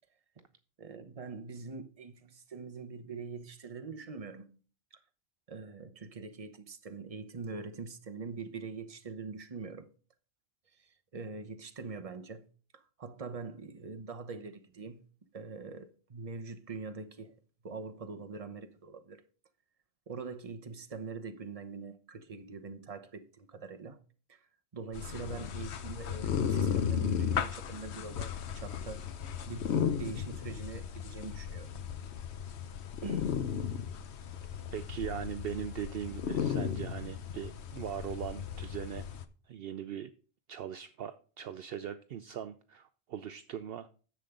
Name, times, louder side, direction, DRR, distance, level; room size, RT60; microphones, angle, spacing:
voice 1, 0.8-4.5 4.9-5.0 5.5-9.9 10.7-12.5 12.7-15.0 15.3-17.4 17.6-19.2 20.1-24.0 24.3-24.5 24.7-29.1 29.5-31.7 33.0-33.4, right 4 dB, 35° right, 1.0 m, -43 dB
sound 1, 24.9-39.2, left 8 dB, 75° left, 1.1 m, -35 dB
voice 2, 34.7-39.0 39.5-40.1 40.5-43.9, right 9 dB, 65° right, 0.8 m, -40 dB
10.5 x 7.7 x 3.8 m
omnidirectional pair, 1.1 m